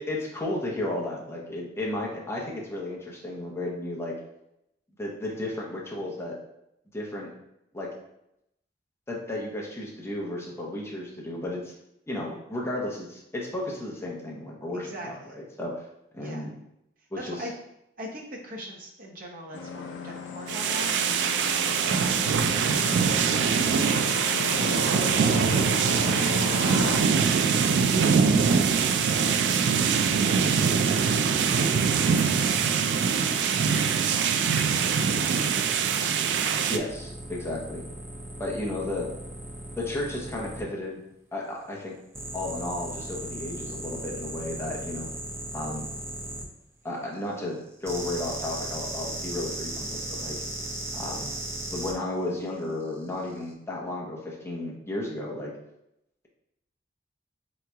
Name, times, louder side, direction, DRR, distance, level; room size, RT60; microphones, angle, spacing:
voice 1, 0.0-4.1 5.0-6.3 6.9-7.3 7.7-7.9 9.1-11.7 12.1-15.8 16.1-16.5 17.1-17.5 36.7-37.9 38.4-39.1 39.8-41.0 41.3-41.9 42.3-45.1 45.5-45.9 46.8-50.4 50.9-51.3 51.7-55.5, left 1 dB, 15° left, -3 dB, 0.8 m, -33 dB
voice 2, 14.7-15.4 16.2-16.5 17.2-17.5 18.0-24.3 33.2-34.1 34.6-36.7, equal, 50° right, -1 dB, 0.8 m, -44 dB
sound 1, 19.5-27.0, left 5 dB, 85° left, 0.5 m, -35 dB
sound 2, 20.5-36.8, right 6 dB, 70° right, 0.3 m, -23 dB
sound 3, 36.9-40.6 42.1-46.4 47.8-51.9 53.2-53.4, right 1 dB, 15° right, 0.5 m, -37 dB
3.7 x 3.1 x 3.4 m, 0.81 s
head